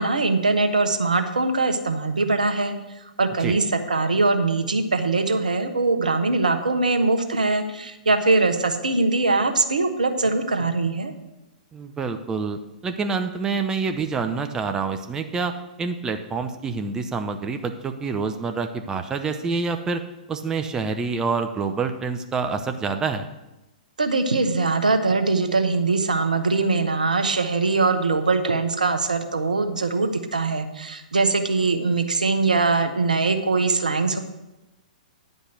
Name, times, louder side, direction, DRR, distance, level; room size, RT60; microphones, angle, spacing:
voice 1, 0.0-2.7 3.2-11.1 24.0-34.2, right 3 dB, 75° right, 8 dB, 1.0 m, -22 dB
voice 2, 11.7-20.0 20.3-23.3, right 4 dB, 15° right, 7 dB, 0.6 m, -27 dB
9.9 x 5.3 x 7.9 m, 0.98 s
figure-of-eight pair, 110°, 4 cm